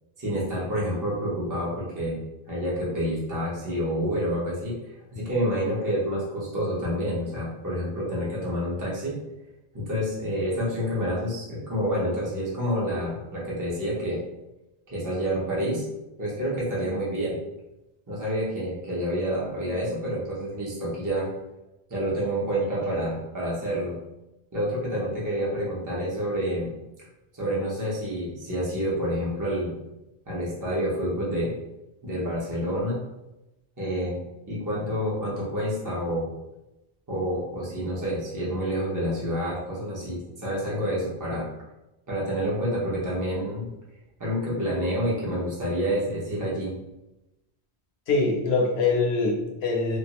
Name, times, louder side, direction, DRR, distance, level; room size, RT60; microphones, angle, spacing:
voice 1, 0.2-2.2 2.5-9.2 9.7-14.2 14.9-15.8 16.2-17.4 18.1-21.3 21.9-23.9 24.5-26.7 27.3-29.7 30.3-31.5 32.0-33.0 33.8-34.2 34.5-36.3 37.1-41.5 42.1-43.7 44.2-46.7, equal, 20° right, -6 dB, 0.6 m, -28 dB
voice 2, 48.1-50.0, left 3 dB, 70° left, -1 dB, 0.9 m, -23 dB
2.4 x 2.2 x 2.9 m, 0.96 s
omnidirectional pair, 1.2 m